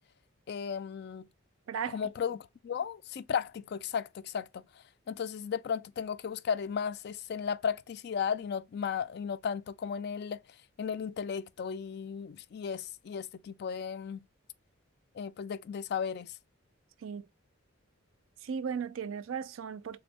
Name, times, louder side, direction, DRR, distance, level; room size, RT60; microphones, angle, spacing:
voice 1, 0.5-1.2 1.9-4.6 5.1-10.4 10.8-14.2 15.2-16.3, left 7 dB, 50° left, 0.3 m, -35 dB
voice 2, 1.7-2.1 17.0-17.3 18.4-20.0, right 6 dB, 70° right, 0.4 m, -36 dB
3.5 x 3.4 x 3.2 m
head